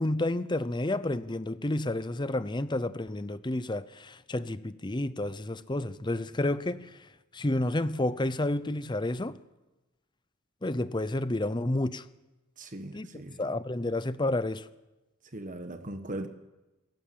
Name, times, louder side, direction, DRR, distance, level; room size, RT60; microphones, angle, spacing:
voice 1, 0.0-7.0 7.3-9.4 10.6-12.0 12.9-13.1 13.4-14.7, left 1 dB, 20° left, 0.7 m, -30 dB
voice 2, 12.6-13.4 15.3-16.3, right 1 dB, 40° right, 1.3 m, -39 dB
27.5 x 14.5 x 7.6 m
head